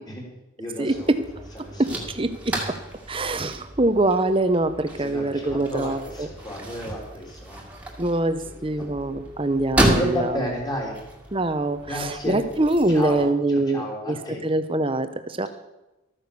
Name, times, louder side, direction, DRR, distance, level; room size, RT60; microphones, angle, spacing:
voice 1, 0.6-1.1 1.6-2.1 5.0-7.6 8.4-8.9 10.0-11.0 11.9-12.4 12.9-14.4, equal, 20° left, -2 dB, 3.5 m, -33 dB
sound 1, 0.9-13.2, right 1 dB, 5° right, 2.1 m, -32 dB
voice 2, 1.4-2.5 3.1-6.3 8.0-10.5 11.3-14.2 14.4-15.5, right 2 dB, 25° right, 10 dB, 0.8 m, -24 dB
13.5 x 9.4 x 6.9 m, 1.0 s
head